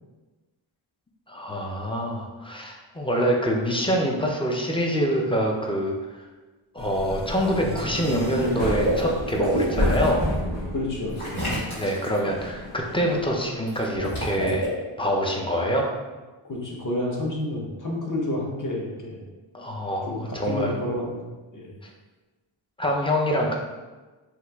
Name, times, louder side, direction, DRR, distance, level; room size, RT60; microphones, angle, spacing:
voice 1, 1.3-6.2 6.7-10.3 11.8-14.7 15.0-15.9 19.5-20.7 21.8-21.9 22.8-23.5, equal, 10° left, 0 dB, 0.3 m, -25 dB
sound 1, 6.8-11.7 12.2-13.3, left 1 dB, 60° left, 1.1 m, -31 dB
Water / Liquid, 7.6-10.1 11.2-12.2 13.7-14.7, equal, 85° left, 1.5 m, -28 dB
voice 2, 10.7-11.4 16.5-19.2 20.0-21.2 21.5-21.8, left 1 dB, 40° left, -2 dB, 0.8 m, -30 dB
2.9 x 2.4 x 3.3 m, 1.2 s
wide cardioid pair, 100°, 49 cm